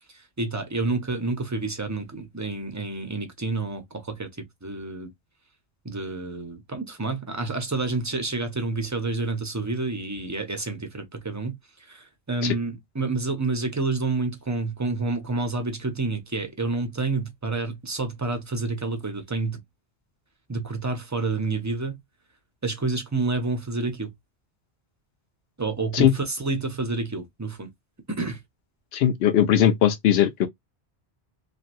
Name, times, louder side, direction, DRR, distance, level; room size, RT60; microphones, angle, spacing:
voice 1, 0.1-5.1 5.8-19.6 20.5-22.0 22.6-24.1 25.6-27.7 28.1-28.4, right 3 dB, 20° right, 0.6 m, -29 dB
voice 2, 28.9-30.5, left 10 dB, 75° left, 0.8 m, -19 dB
2.9 x 2.5 x 2.5 m
omnidirectional pair, 1.1 m